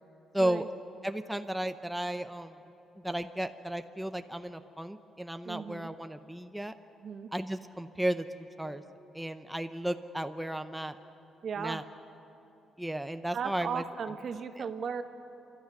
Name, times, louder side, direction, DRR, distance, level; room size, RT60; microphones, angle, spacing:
voice 1, 0.3-0.7 1.0-2.5 3.0-6.7 7.3-8.8 9.1-11.0 11.6-11.8 12.8-13.8, right 1 dB, 5° right, 8 dB, 0.7 m, -34 dB
voice 2, 5.4-5.9 7.0-7.3 11.4-11.8 13.3-15.0, right 6 dB, 55° right, 9 dB, 1.2 m, -36 dB
28.0 x 12.5 x 9.7 m, 3.0 s
cardioid pair, 90°, 0 cm